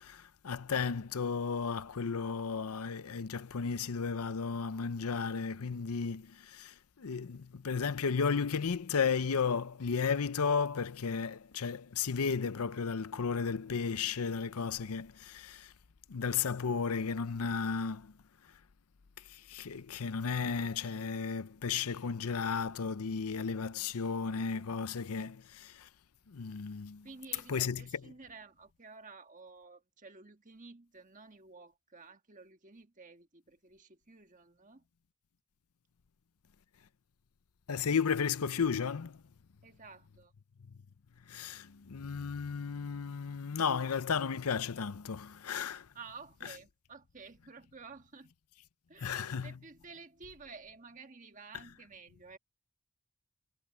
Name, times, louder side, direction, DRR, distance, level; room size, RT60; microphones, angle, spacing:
voice 1, 0.0-15.7 16.1-18.1 19.2-25.9 26.3-27.1 27.5-27.9 37.7-39.2 41.3-45.9 49.0-49.5, left 5 dB, 80° left, 0.6 m, -34 dB
voice 2, 27.0-34.8 39.6-40.3 45.9-48.3 48.9-52.4, right 4 dB, 35° right, 1.5 m, -52 dB
head